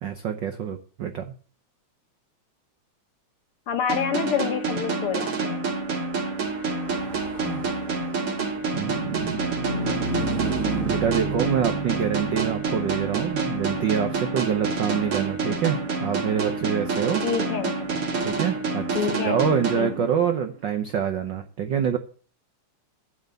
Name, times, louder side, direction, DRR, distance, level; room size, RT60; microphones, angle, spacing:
voice 1, 0.0-1.3 7.4-7.6 8.7-9.4 10.8-17.2 18.2-18.9 19.2-22.0, right 8 dB, 80° right, 1.0 m, -26 dB
voice 2, 3.7-5.6 17.2-17.9 18.9-19.4 19.8-20.1, left 8 dB, 65° left, 1.6 m, -27 dB
sound 1, 3.9-20.5, right 4 dB, 50° right, 2.8 m, -28 dB
Car passing by / Truck, 6.0-19.7, right 3 dB, 35° right, 1.6 m, -35 dB
10.0 x 8.0 x 6.8 m
omnidirectional pair, 3.3 m